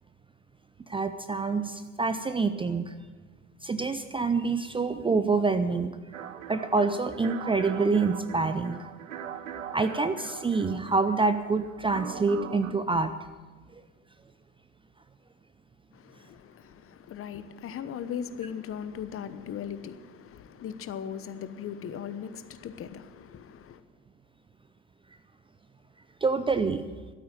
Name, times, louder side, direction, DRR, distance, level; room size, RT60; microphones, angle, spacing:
voice 1, 0.9-2.9 3.6-6.0 6.5-8.8 9.7-13.1 26.2-26.8, right 4 dB, 15° right, 0.6 m, -26 dB
sound 1, 6.1-12.7, right 8 dB, 85° right, 0.8 m, -41 dB
voice 2, 15.9-23.8, left 8 dB, 35° left, 1.0 m, -38 dB
13.0 x 8.6 x 9.0 m
hypercardioid pair, 75°, 38 cm